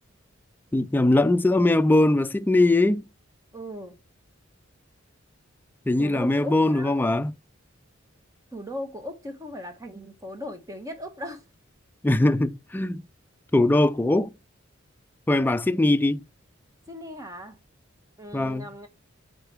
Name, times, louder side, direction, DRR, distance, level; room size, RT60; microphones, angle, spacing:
voice 1, 0.7-3.1 5.9-7.3 12.0-13.0 13.5-14.3 15.3-16.2 18.3-18.7, left 2 dB, 10° left, 0.3 m, -21 dB
voice 2, 3.5-4.0 6.0-6.9 8.5-11.4 16.9-17.6 18.2-18.9, equal, 15° right, 1.2 m, -38 dB
8.2 x 4.3 x 3.4 m
head